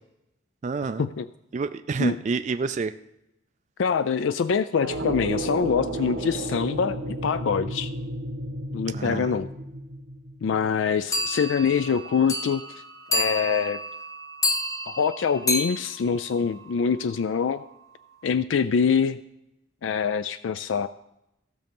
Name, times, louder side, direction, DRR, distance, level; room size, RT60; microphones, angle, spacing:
voice 1, 0.6-1.1 1.5-2.9 8.9-9.3, right 4 dB, 35° right, 10 dB, 0.3 m, -28 dB
voice 2, 3.8-7.9 8.7-9.5 10.4-12.8 13.1-13.8 14.9-17.6 18.2-19.2 19.8-20.9, left 6 dB, 75° left, 13 dB, 0.4 m, -24 dB
sound 1, 4.8-10.7, right 1 dB, 85° right, 1.0 m, -33 dB
sound 2, 11.1-17.0, left 1 dB, 15° left, 0.8 m, -30 dB
15.5 x 6.5 x 5.3 m, 0.85 s
head